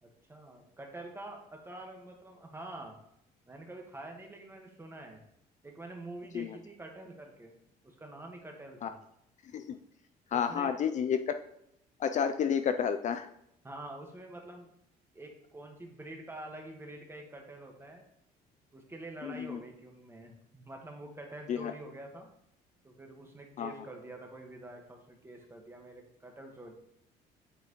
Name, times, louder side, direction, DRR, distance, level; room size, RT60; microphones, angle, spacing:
voice 1, 0.0-3.0 3.5-5.2 5.6-7.5 7.8-9.0 10.3-10.8 13.6-14.7 15.1-18.0 18.7-22.3 22.8-26.7, right 2 dB, 15° right, 2 dB, 1.5 m, -46 dB
voice 2, 10.3-11.3 12.0-13.3 19.2-19.6 21.5-21.7 23.6-23.7, left 7 dB, 45° left, 8 dB, 0.4 m, -30 dB
8.2 x 5.9 x 3.1 m, 0.77 s
cardioid pair, 110°, 17 cm